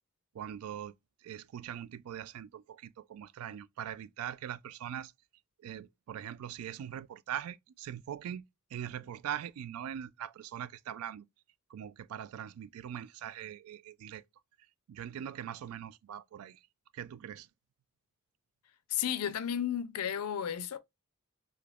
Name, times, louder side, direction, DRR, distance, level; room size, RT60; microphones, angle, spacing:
voice 1, 0.3-0.9 1.2-5.1 5.6-8.4 8.7-11.3 11.7-14.2 14.9-16.6 16.9-17.5, right 9 dB, 75° right, 0.3 m, -41 dB
voice 2, 18.9-20.8, left 9 dB, 85° left, 0.4 m, -33 dB
3.5 x 2.8 x 2.3 m
head